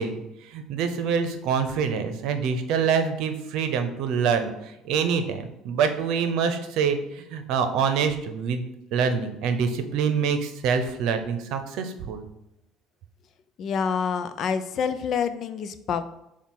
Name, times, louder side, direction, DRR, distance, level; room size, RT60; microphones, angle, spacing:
voice 1, 0.0-8.7 8.9-12.2, right 6 dB, 70° right, 8 dB, 0.7 m, -26 dB
voice 2, 13.6-16.0, left 6 dB, 55° left, 11 dB, 0.5 m, -27 dB
7.2 x 2.4 x 5.5 m, 0.88 s
supercardioid pair, 80°, 0 cm